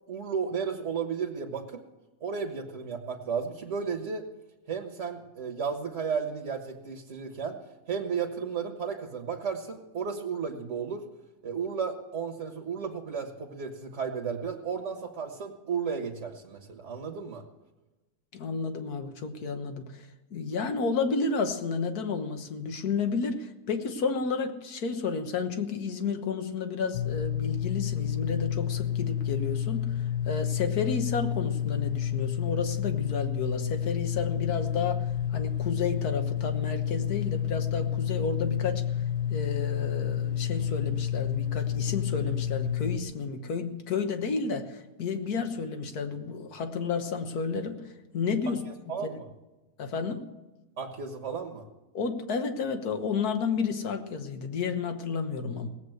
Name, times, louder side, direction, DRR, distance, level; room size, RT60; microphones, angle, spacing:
voice 1, 0.1-1.8 2.2-4.2 4.7-7.6 7.9-11.0 11.4-17.4 48.4-48.5 48.9-49.3 50.8-51.7, right 6 dB, 50° right, 3 dB, 1.6 m, -33 dB
voice 2, 18.3-29.9 30.3-38.8 39.3-47.8 48.1-48.6 49.0-49.1 49.8-50.2 51.9-55.7, left 5 dB, 80° left, 7 dB, 1.7 m, -31 dB
sound 1, 26.9-43.0, left 10 dB, 60° left, 0.9 m, -30 dB
18.0 x 8.1 x 7.9 m, 1.1 s
omnidirectional pair, 1.6 m